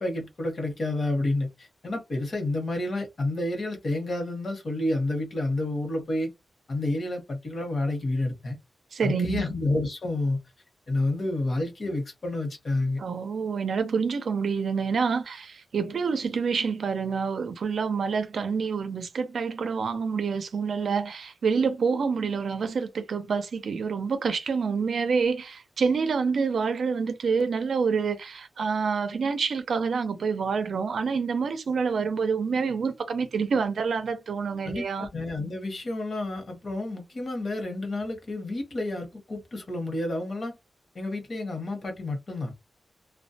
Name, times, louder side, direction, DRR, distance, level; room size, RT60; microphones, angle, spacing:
voice 1, 0.0-6.3 6.7-8.6 9.0-10.4 10.9-13.0 34.6-40.6 40.9-42.5, left 2 dB, 45° left, 1.0 m, -29 dB
voice 2, 8.9-9.4 13.0-35.1, right 5 dB, 70° right, 0.4 m, -27 dB
2.2 x 2.1 x 2.7 m
wide cardioid pair, 125°, 0 cm